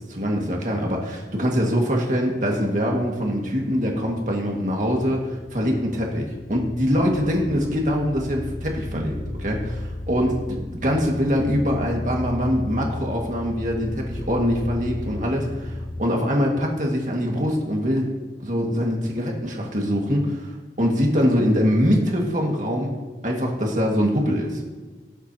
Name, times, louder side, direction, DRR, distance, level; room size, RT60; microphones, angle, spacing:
voice 1, 0.0-18.1 18.4-22.9 23.2-24.6, equal, 45° right, -1 dB, 2.0 m, -23 dB
sound 1, 3.5-16.0, left 1 dB, 15° left, 0.4 m, -35 dB
19.0 x 8.0 x 2.9 m, 1.3 s
head